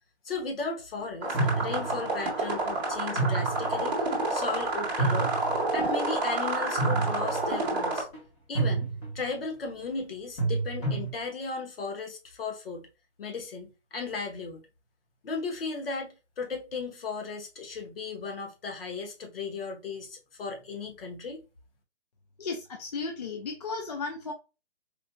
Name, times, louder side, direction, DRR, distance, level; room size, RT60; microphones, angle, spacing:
voice 1, 0.2-5.3 5.7-8.1 8.5-8.9 9.1-12.9 13.2-14.6 15.2-21.4, left 4 dB, 55° left, 1.1 m, -36 dB
sound 1, 1.2-8.0, right 2 dB, 15° right, 0.9 m, -29 dB
sound 2, 1.3-2.2 3.2-3.9 4.3-4.4 5.0-5.7 6.8-7.6 7.9-8.2 8.5-9.2 10.4-11.1, right 3 dB, 15° left, 1.0 m, -29 dB
voice 2, 22.4-24.3, left 4 dB, 35° left, 0.5 m, -35 dB
4.4 x 2.5 x 2.2 m
hypercardioid pair, 150°, 34 cm